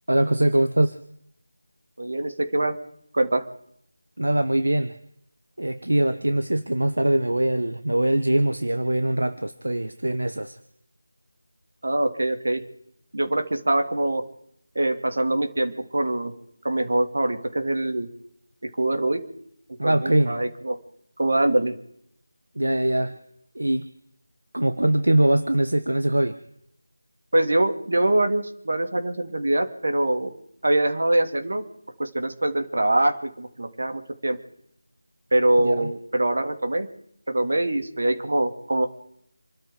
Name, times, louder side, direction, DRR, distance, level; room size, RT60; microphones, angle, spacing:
voice 1, 0.1-1.0 4.2-5.0 5.6-10.6 19.8-20.4 22.6-23.2 23.5-23.9 24.5-26.4 35.6-35.9, right 1 dB, 80° right, 11 dB, 1.0 m, -22 dB
voice 2, 2.0-2.8 3.1-3.5 11.8-12.6 13.1-14.2 14.7-16.3 16.6-18.1 18.6-19.2 19.8-20.8 21.2-21.7 27.3-30.3 30.6-31.7 32.0-34.4 35.3-36.9 37.3-38.9, right 1 dB, 60° right, 6 dB, 2.5 m, -23 dB
27.5 x 13.0 x 3.8 m, 0.72 s
figure-of-eight pair, 165°, 0 cm